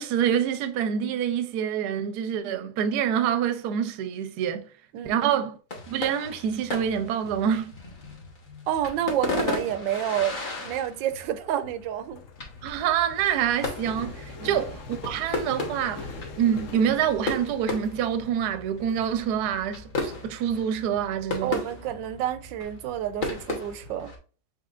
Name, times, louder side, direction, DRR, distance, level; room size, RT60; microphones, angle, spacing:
voice 1, 0.0-4.7 5.0-5.6 5.9-7.8 12.6-21.6, right 9 dB, 75° right, 1.1 m, -26 dB
voice 2, 4.9-5.3 8.7-12.2 14.4-14.6 21.4-24.1, right 11 dB, 90° right, 1.3 m, -29 dB
sound 1, 5.7-24.2, left 3 dB, 35° left, 1.0 m, -36 dB
sound 2, 7.1-23.6, left 4 dB, 60° left, 0.9 m, -45 dB
6.6 x 3.4 x 2.4 m
omnidirectional pair, 1.9 m